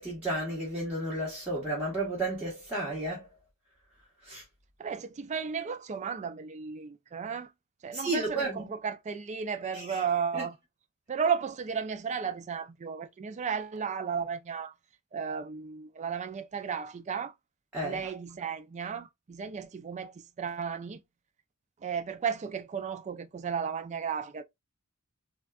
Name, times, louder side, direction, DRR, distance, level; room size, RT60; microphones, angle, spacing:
voice 1, 0.0-3.3 4.2-4.4 7.9-8.7 9.7-10.0 10.3-10.5 17.7-18.0, right 2 dB, 10° right, 1.0 m, -32 dB
voice 2, 4.8-7.5 7.8-10.6 11.1-14.7 15.1-17.3 17.8-21.0 21.8-24.4, right 6 dB, 30° right, 0.3 m, -34 dB
3.4 x 2.2 x 2.3 m
head